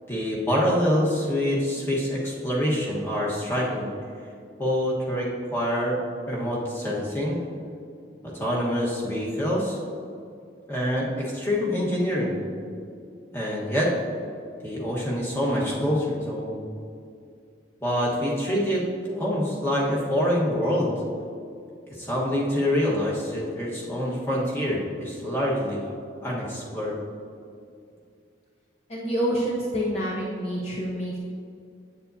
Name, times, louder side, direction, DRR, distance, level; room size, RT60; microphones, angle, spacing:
voice 1, 0.1-3.9 4.6-6.0 6.3-7.4 8.2-9.8 10.7-12.5 13.3-13.9 14.6-16.6 17.8-18.8 19.1-20.9 21.9-25.8 26.2-27.0, equal, 15° left, -5 dB, 1.2 m, -26 dB
voice 2, 28.9-31.2, equal, 35° left, -4 dB, 0.7 m, -27 dB
8.2 x 7.5 x 2.7 m, 2.4 s
head